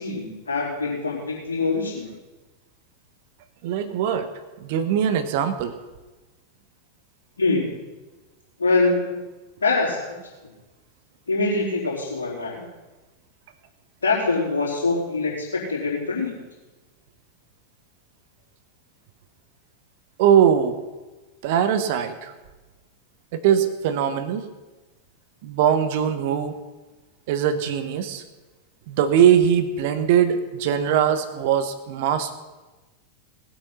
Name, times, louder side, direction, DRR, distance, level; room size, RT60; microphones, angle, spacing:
voice 1, 0.0-2.1 7.4-7.8 8.6-9.2 9.6-10.2 11.3-12.7 14.0-16.4, left 3 dB, 70° left, -4 dB, 4.3 m, -24 dB
voice 2, 3.6-4.3 4.6-5.7 20.2-20.8 21.4-22.3 23.3-24.4 25.4-26.6 27.3-28.2 28.9-32.3, right 9 dB, 50° right, 9 dB, 1.2 m, -21 dB
18.5 x 8.3 x 5.7 m, 1.2 s
figure-of-eight pair, 90°, 0 cm